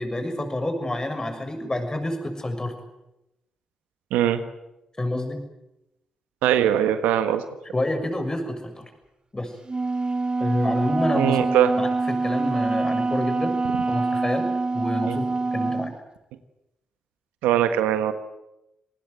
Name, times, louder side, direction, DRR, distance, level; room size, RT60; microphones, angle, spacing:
voice 1, 0.0-2.7 5.0-5.4 7.7-8.9 9.3-9.5 10.4-11.4 11.8-13.5 13.9-14.5 14.7-15.9, left 1 dB, 25° left, 7 dB, 6.6 m, -28 dB
voice 2, 4.1-4.4 6.4-7.4 11.1-11.7 15.1-15.2 17.4-18.1, right 11 dB, 85° right, 10 dB, 1.5 m, -21 dB
Wind instrument woodwind instrument, 9.7-15.9, right 3 dB, 35° right, 1.1 m, -25 dB
27.5 x 19.5 x 8.0 m, 0.91 s
hypercardioid pair, 40°, 3 cm